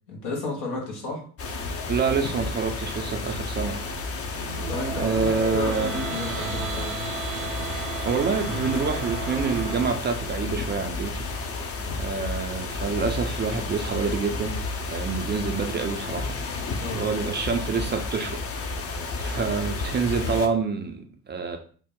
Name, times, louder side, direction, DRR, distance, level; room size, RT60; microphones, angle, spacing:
voice 1, 0.1-1.2 4.7-7.0 16.8-17.0, left 2 dB, 75° left, 0 dB, 1.0 m, -33 dB
sound 1, 1.4-20.5, left 3 dB, 30° left, 0.5 m, -32 dB
voice 2, 1.9-3.8 5.0-5.9 8.0-11.3 12.0-14.5 14.8-16.3 16.9-18.4 19.2-21.6, right 5 dB, 25° right, 4 dB, 0.3 m, -27 dB
sound 2, 4.2-9.9, right 5 dB, 75° right, 0.7 m, -34 dB
2.6 x 2.0 x 3.7 m, 0.44 s
hypercardioid pair, 50°, 45 cm